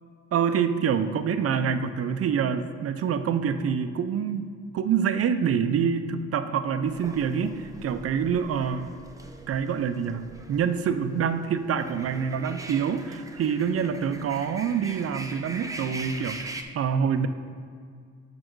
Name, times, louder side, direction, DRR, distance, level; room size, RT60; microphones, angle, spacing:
voice 1, 0.3-4.5 4.7-8.9 9.5-17.3, right 7 dB, 50° right, 10 dB, 0.6 m, -26 dB
sound 1, 6.9-16.6, right 2 dB, 10° right, 0.6 m, -42 dB
6.5 x 5.7 x 4.6 m, 2.1 s
cardioid pair, 90°, 30 cm